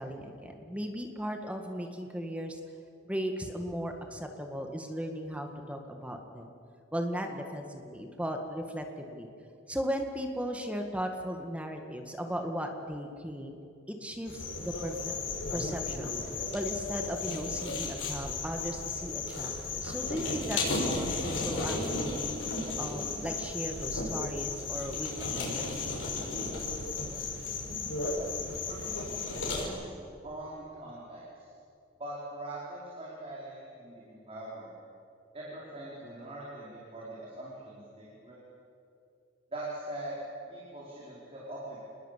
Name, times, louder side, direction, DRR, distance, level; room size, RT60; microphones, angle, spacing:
voice 1, 0.0-2.6 3.0-6.5 6.9-9.3 9.7-13.6 13.9-15.1 15.5-16.1 16.5-22.3 22.8-25.9, equal, 5° right, 4 dB, 1.8 m, -37 dB
sound 1, 14.3-29.6, left 3 dB, 85° left, 6.5 m, -34 dB
voice 2, 28.7-29.9 30.2-31.5 32.0-34.7 35.3-38.4 39.5-40.2 40.5-41.8, right 1 dB, 30° right, -6 dB, 4.9 m, -42 dB
27.5 x 21.0 x 8.4 m, 2.5 s
head